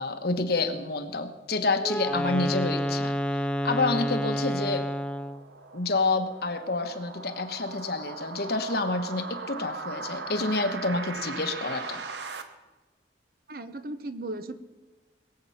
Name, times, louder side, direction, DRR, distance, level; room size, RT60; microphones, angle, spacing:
voice 1, 0.0-4.9 5.7-12.0, left 3 dB, 60° left, 7 dB, 1.2 m, -28 dB
Wind instrument woodwind instrument, 1.8-5.5, equal, 5° left, 0.3 m, -29 dB
sound 1, 4.4-12.4, right 4 dB, 70° right, 1.2 m, -39 dB
voice 2, 13.5-14.5, right 2 dB, 55° right, 11 dB, 0.9 m, -36 dB
21.0 x 7.9 x 5.7 m, 1.2 s
head